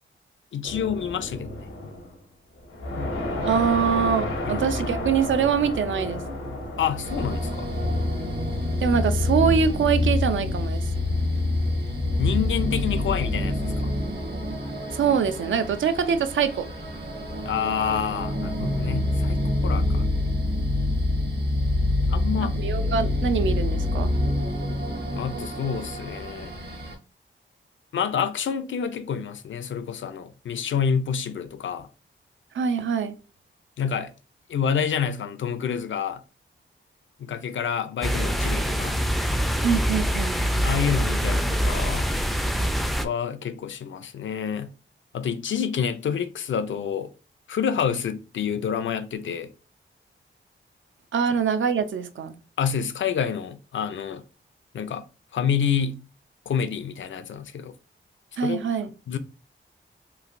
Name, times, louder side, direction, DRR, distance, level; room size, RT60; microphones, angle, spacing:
voice 1, 0.5-1.7 4.2-4.7 6.8-7.8 12.2-13.9 17.4-20.1 22.1-22.6 25.1-26.6 27.9-31.9 33.8-34.1 34.5-36.2 37.2-39.0 40.6-42.1 43.0-44.7 45.1-47.1 47.5-49.5 52.6-54.2 54.7-55.0 55.3-56.0 56.5-57.7 58.3-58.6 59.1-59.2, left 7 dB, 70° left, 0.4 m, -28 dB
sound 1, 0.6-2.2 2.6-19.0, left 1 dB, 85° left, 0.9 m, -35 dB
voice 2, 3.4-6.2 8.8-10.9 14.9-16.7 22.4-24.1 32.5-33.2 39.6-40.4 51.1-52.3 58.4-58.9, right 7 dB, 70° right, 0.4 m, -24 dB
sound 2, 7.0-26.9, left 1 dB, 50° right, 1.0 m, -26 dB
sound 3, 38.0-43.1, equal, ahead, 0.3 m, -24 dB
3.1 x 2.4 x 2.5 m
cardioid pair, 75°, 21 cm